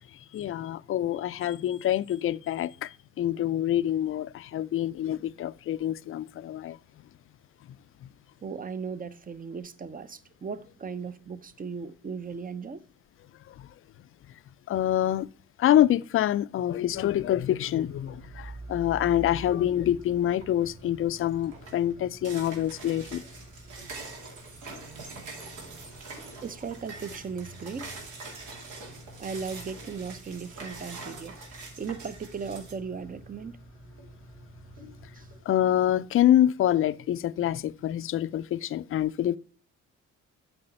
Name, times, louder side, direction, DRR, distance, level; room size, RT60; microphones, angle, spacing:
voice 1, 0.3-6.8 14.7-15.3 15.6-23.2 35.5-39.4, left 12 dB, 45° left, 0.4 m, -26 dB
voice 2, 8.4-12.8 26.4-28.0 29.2-31.4 31.8-33.6 35.1-35.3, right 5 dB, 30° right, 0.6 m, -37 dB
sound 1, 16.9-35.4, right 1 dB, 55° right, 3.6 m, -48 dB
sound 2, 20.3-20.7 21.1-32.7, right 3 dB, 80° right, 2.3 m, -44 dB
7.7 x 4.8 x 4.3 m
cardioid pair, 90°, 30 cm